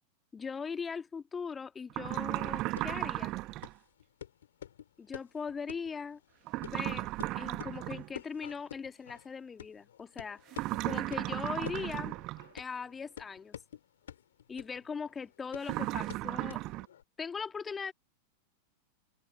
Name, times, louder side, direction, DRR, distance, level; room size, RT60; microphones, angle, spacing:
voice 1, 0.3-3.3 5.0-6.2 6.6-7.1 7.3-12.2 12.5-13.6 14.5-16.6 17.2-17.9, left 5 dB, 15° left, 1.8 m, -40 dB
sound 1, 1.9-3.7 6.5-8.1 10.5-12.5 15.6-16.9, right 19 dB, 40° right, 1.5 m, -35 dB
sound 2, 2.6-17.0, left 10 dB, 65° left, 5.0 m, -50 dB
figure-of-eight pair, 90°, 0 cm